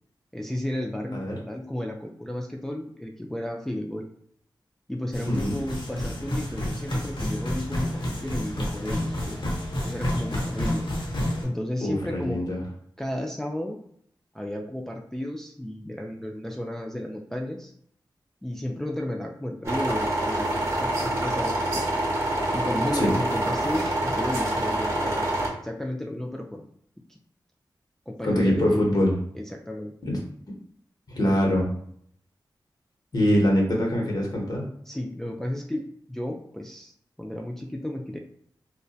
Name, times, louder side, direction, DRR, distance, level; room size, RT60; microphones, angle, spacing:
voice 1, 0.3-4.0 4.9-9.4 9.8-10.9 11.2-12.4 13.0-13.8 14.3-17.7 18.4-21.9 22.5-25.3 25.6-26.6 27.1-27.2 28.1-28.8 29.3-29.9 34.9-36.9 37.2-38.2, left 1 dB, 5° left, 0 dB, 0.3 m, -33 dB
sound 1, 5.1-11.4, left 1 dB, 85° left, 0.8 m, -29 dB
voice 2, 5.3-5.6 11.8-12.6 23.0-23.1 28.2-29.1 30.0-30.2 30.5-30.6 31.1-31.7 33.1-34.7, equal, 55° left, -2 dB, 0.8 m, -23 dB
sound 2, 19.6-25.5, right 1 dB, 35° right, 0.9 m, -26 dB
2.5 x 2.1 x 2.3 m, 0.66 s
cardioid pair, 55°, 8 cm